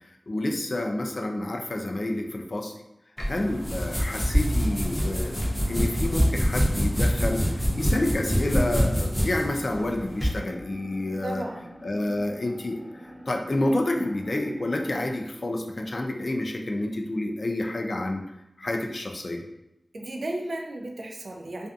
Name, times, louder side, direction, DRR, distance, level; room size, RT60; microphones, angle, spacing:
voice 1, 0.3-2.7 3.3-5.4 5.7-11.5 11.8-18.2 18.6-19.4, left 1 dB, 60° left, 3 dB, 0.3 m, -29 dB
sound 1, 3.2-10.3, equal, 20° left, 0.6 m, -25 dB
sound 2, 4.3-15.2, equal, 35° left, 1.1 m, -46 dB
voice 2, 11.2-11.7 19.9-21.7, right 1 dB, 80° right, 2 dB, 0.3 m, -34 dB
2.5 x 2.4 x 2.3 m, 0.88 s
wide cardioid pair, 65°, 0 cm